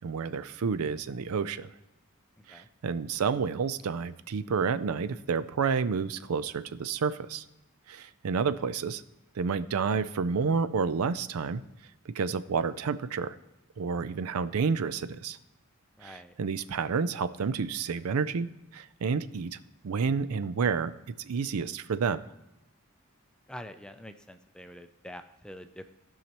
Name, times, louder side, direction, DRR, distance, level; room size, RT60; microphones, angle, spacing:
voice 1, 0.0-1.7 2.5-7.4 7.9-9.0 9.4-11.6 12.1-13.4 13.8-15.4 16.0-18.5 18.7-19.6 19.8-20.9 21.2-22.2, right 5 dB, 90° right, 14 dB, 0.4 m, -30 dB
voice 2, 16.0-16.3 23.5-25.9, left 1 dB, 5° left, 8 dB, 0.4 m, -45 dB
16.5 x 5.6 x 3.0 m, 0.93 s
head